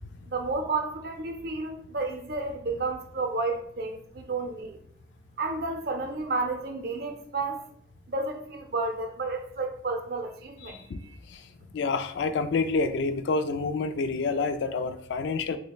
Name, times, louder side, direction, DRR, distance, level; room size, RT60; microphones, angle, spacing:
voice 1, 0.3-4.8 5.4-7.6 8.1-11.2, right 3 dB, 60° right, 0.5 m, -31 dB
voice 2, 10.6-15.6, left 4 dB, 75° left, 0.3 m, -29 dB
6.3 x 2.1 x 2.3 m
head